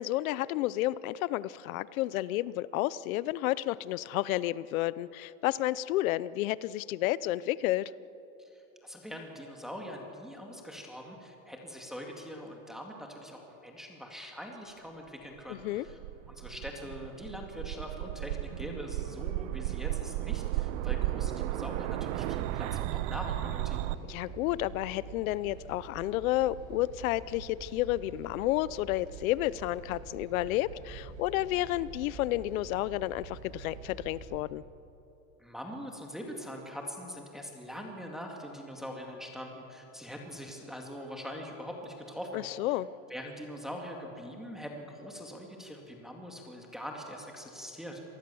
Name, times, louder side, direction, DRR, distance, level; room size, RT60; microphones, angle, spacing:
voice 1, 0.0-7.9 15.5-15.9 24.1-34.6 42.3-42.9, left 16 dB, 85° left, 19 dB, 0.8 m, -31 dB
voice 2, 8.4-16.0 16.3-23.9 35.4-42.4 42.7-42.8 43.1-48.0, equal, ahead, 0 dB, 2.2 m, -43 dB
sound 1, 15.6-23.9, right 15 dB, 65° right, 0.8 m, -34 dB
sound 2, 20.6-34.4, right 6 dB, 80° right, 4.8 m, -47 dB
26.5 x 19.5 x 7.1 m, 3.0 s
supercardioid pair, 160°, 40 cm